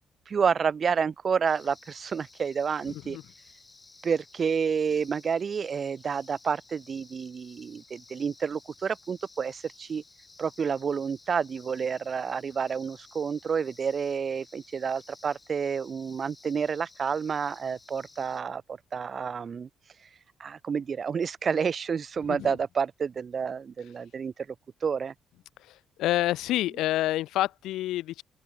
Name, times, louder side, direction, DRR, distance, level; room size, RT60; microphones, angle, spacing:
voice 1, 0.3-3.2 4.0-10.0 10.4-19.7 20.4-24.5 24.8-25.1, right 6 dB, 45° right, 1.1 m, -29 dB
sound 1, 1.5-18.4, left 3 dB, 20° left, 7.3 m, -55 dB
voice 2, 26.0-28.2, left 15 dB, 90° left, 0.6 m, -27 dB
open air
cardioid pair, 90°, 0 cm